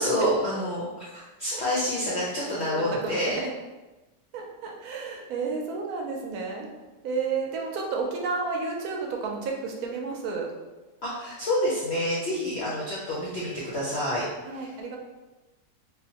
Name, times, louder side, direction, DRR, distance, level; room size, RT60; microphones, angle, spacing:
voice 1, 0.0-3.4 11.0-14.3 14.5-14.7, equal, 65° left, -7 dB, 0.6 m, -28 dB
voice 2, 2.7-3.5 4.3-6.7 7.0-10.5 12.3-12.7 14.4-15.0, right 4 dB, 70° right, 0 dB, 1.0 m, -32 dB
3.6 x 2.1 x 2.7 m, 1.1 s
omnidirectional pair, 1.8 m